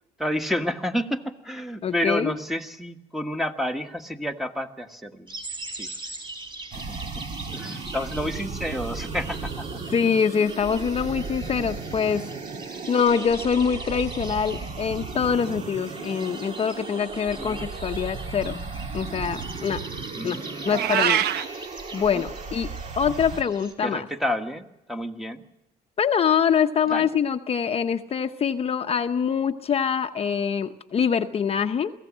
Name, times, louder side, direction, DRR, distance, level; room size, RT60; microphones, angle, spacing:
voice 1, 0.2-5.3 5.7-5.9 6.7-9.8 17.4-17.7 20.2-21.0 21.9-22.3 23.8-25.4 26.9-27.1, equal, ahead, 7 dB, 1.5 m, -30 dB
voice 2, 1.8-2.3 9.9-12.3 12.9-18.6 18.9-19.8 20.2-20.4 20.6-21.2 21.5-21.6 21.9-22.7 23.0-24.1 26.0-31.9, left 7 dB, 35° left, 7 dB, 0.8 m, -24 dB
sound 1, 5.3-23.7, right 2 dB, 30° right, 4.4 m, -42 dB
sound 2, 6.7-23.4, right 4 dB, 45° right, 1.9 m, -35 dB
Meow, 20.7-21.4, right 11 dB, 70° right, 0.8 m, -23 dB
23.0 x 16.0 x 7.4 m, 0.89 s
cardioid pair, 110°, 17 cm